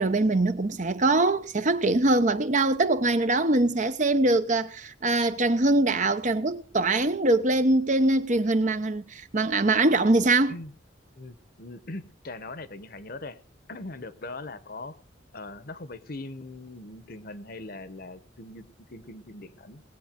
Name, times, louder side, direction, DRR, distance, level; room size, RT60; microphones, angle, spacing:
voice 1, 0.0-10.5, right 2 dB, 40° right, 0.9 m, -23 dB
voice 2, 11.1-13.4 13.7-14.9 15.3-19.8, left 2 dB, 50° left, 1.0 m, -41 dB
20.0 x 8.4 x 5.2 m
head